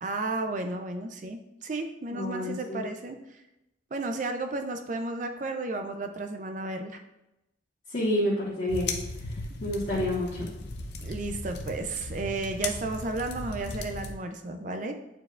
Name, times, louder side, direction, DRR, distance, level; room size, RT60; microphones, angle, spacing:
voice 1, 0.0-3.4 3.9-7.0 11.0-14.9, right 2 dB, 40° right, 6 dB, 0.4 m, -33 dB
voice 2, 2.1-2.8 7.9-9.0 9.6-10.5, left 1 dB, 45° left, -8 dB, 1.2 m, -29 dB
sound 1, 8.7-14.1, left 2 dB, 60° left, 0.6 m, -36 dB
8.8 x 4.6 x 2.4 m, 0.91 s
head